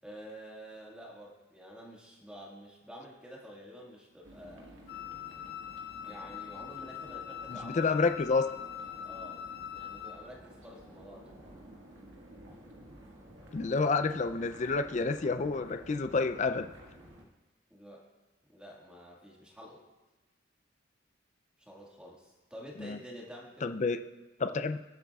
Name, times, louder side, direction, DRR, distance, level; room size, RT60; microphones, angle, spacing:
voice 1, 0.0-4.7 6.0-8.0 9.0-9.5 9.7-11.3 17.7-18.0 18.5-19.8 21.6-23.7, equal, 5° right, -3 dB, 1.7 m, -49 dB
sound 1, 4.2-17.2, right 1 dB, 80° right, 1.9 m, -52 dB
Wind instrument woodwind instrument, 4.9-10.2, left 10 dB, 55° left, 1.3 m, -42 dB
voice 2, 7.5-8.4 13.5-16.7 22.8-23.0 23.6-24.0 24.4-24.8, left 4 dB, 35° left, 8 dB, 0.4 m, -29 dB
21.0 x 8.2 x 2.4 m, 1.1 s
head